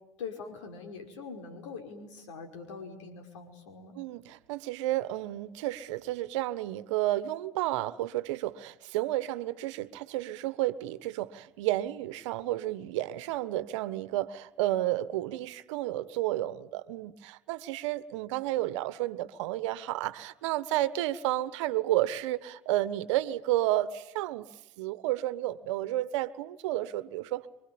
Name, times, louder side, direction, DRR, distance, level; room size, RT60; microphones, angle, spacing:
voice 1, 0.2-4.0, left 5 dB, 85° left, 4 dB, 5.4 m, -43 dB
voice 2, 3.9-27.5, right 15 dB, 80° right, 15 dB, 1.3 m, -31 dB
26.0 x 24.0 x 8.8 m, 0.95 s
hypercardioid pair, 70°, 15 cm